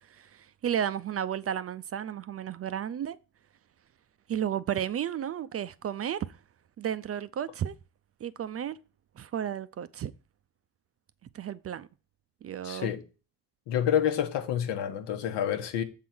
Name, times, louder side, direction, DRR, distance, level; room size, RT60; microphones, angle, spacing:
voice 1, 0.0-3.2 4.3-6.4 6.8-7.8 8.2-8.8 9.2-10.1 11.3-11.9 12.4-12.9, right 9 dB, 35° right, 0.4 m, -33 dB
voice 2, 12.6-13.0 13.7-15.8, left 9 dB, 85° left, 1.2 m, -28 dB
7.2 x 3.9 x 6.0 m
cardioid pair, 110°, 42 cm